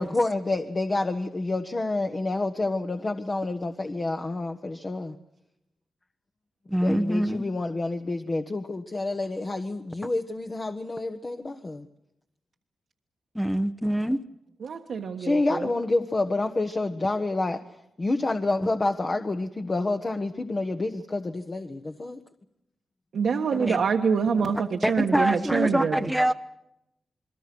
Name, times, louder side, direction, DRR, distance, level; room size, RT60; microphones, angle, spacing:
voice 1, 0.0-5.2 6.8-11.9 15.2-17.6 18.0-22.2, left 2 dB, 30° left, 4 dB, 1.3 m, -28 dB
voice 2, 6.7-7.4 13.3-14.2 18.6-18.7 23.5-23.8 24.8-26.3, right 1 dB, ahead, 6 dB, 0.9 m, -25 dB
voice 3, 14.6-15.7 23.1-26.0, right 6 dB, 70° right, 1 dB, 1.4 m, -25 dB
28.5 x 21.5 x 6.2 m, 0.83 s
cardioid pair, 90°, 0 cm